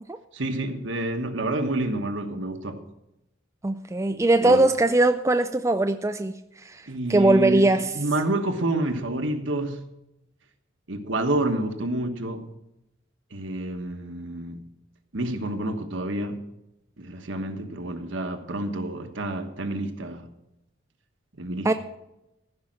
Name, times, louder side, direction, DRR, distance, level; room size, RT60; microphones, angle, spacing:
voice 1, 0.3-2.8 4.4-4.6 6.9-9.9 10.9-12.5 13.3-14.6 15.1-16.4 17.0-20.3 21.4-21.7, right 2 dB, 65° right, 1.3 m, -28 dB
voice 2, 3.6-6.3 6.6-6.8 7.1-7.9 21.6-21.7, right 2 dB, 15° right, 0.3 m, -20 dB
15.0 x 5.7 x 7.6 m
head